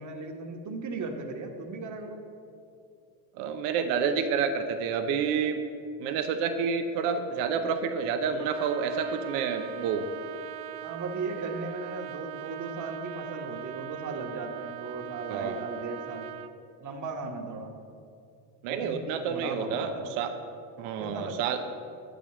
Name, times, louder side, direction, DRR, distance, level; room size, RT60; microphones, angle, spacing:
voice 1, 0.0-2.2 10.8-16.3 16.8-17.7 18.7-20.2 21.0-21.4, right 3 dB, 40° right, 4 dB, 1.3 m, -37 dB
voice 2, 3.4-5.6 6.0-10.1 15.3-15.7 18.6-19.9 20.2-20.3 20.8-21.6, right 6 dB, 90° right, 7 dB, 0.8 m, -29 dB
Trumpet, 8.4-16.6, right 15 dB, 55° right, 0.6 m, -40 dB
8.5 x 5.3 x 7.5 m, 2.5 s
supercardioid pair, 110°, 45 cm